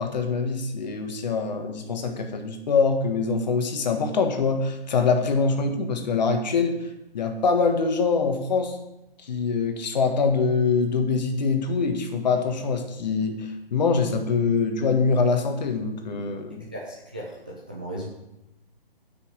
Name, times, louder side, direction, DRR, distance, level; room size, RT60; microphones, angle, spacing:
voice 1, 0.0-6.9 7.1-8.8 9.2-16.6, left 4 dB, 45° left, 5 dB, 1.6 m, -24 dB
voice 2, 16.7-18.1, right 1 dB, 10° right, -4 dB, 0.3 m, -36 dB
8.6 x 6.1 x 7.3 m, 0.91 s
figure-of-eight pair, 140°, 29 cm